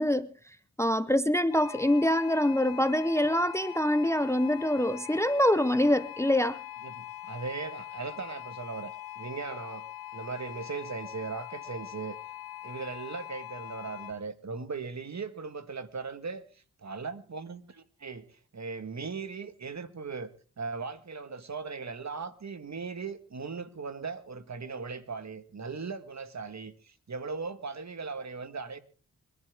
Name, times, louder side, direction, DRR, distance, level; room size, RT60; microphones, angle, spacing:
voice 1, 0.0-6.6, left 1 dB, 10° left, 0.7 m, -25 dB
sound 1, 1.5-14.1, left 13 dB, 85° left, 2.0 m, -42 dB
voice 2, 6.8-9.9 10.1-12.2 12.6-20.3 20.6-28.8, right 4 dB, 50° right, 1.6 m, -38 dB
25.0 x 11.0 x 3.6 m
cardioid pair, 45°, 35 cm